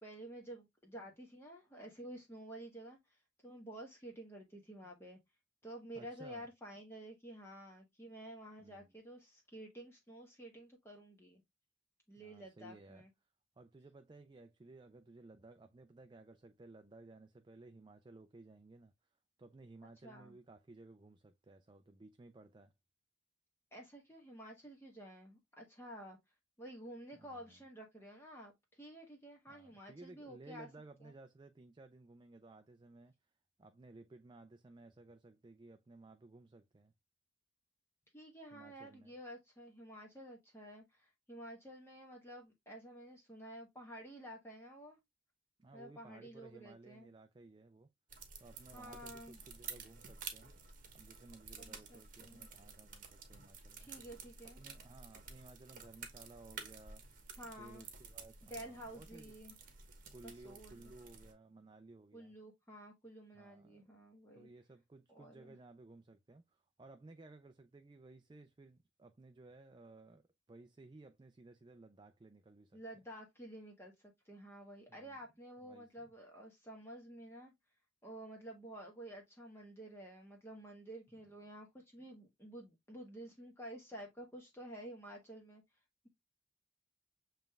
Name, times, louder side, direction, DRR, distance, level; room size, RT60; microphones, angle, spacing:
voice 1, 0.0-5.2 5.6-11.4 12.1-13.1 20.0-20.3 23.7-26.2 26.6-30.7 31.0-31.1 38.1-45.0 45.7-47.1 48.7-49.4 51.6-52.5 53.8-54.6 57.4-57.8 58.4-59.5 60.2-60.9 62.1-64.5 65.1-65.6 72.7-77.5 78.0-85.6, right 1 dB, 15° left, 1.1 m, -51 dB
voice 2, 5.9-6.5 8.6-8.9 12.2-13.1 13.6-18.9 19.4-22.7 27.1-27.6 29.5-33.3 33.6-36.9 38.5-39.1 45.6-47.9 48.4-50.5 50.9-53.9 54.6-57.0 57.6-59.3 60.1-62.4 63.3-63.8 64.3-72.8 74.9-75.2 75.6-76.1, right 2 dB, 25° right, 0.3 m, -57 dB
sound 1, 48.1-61.3, right 6 dB, 45° right, 1.1 m, -52 dB
7.3 x 3.3 x 2.2 m
head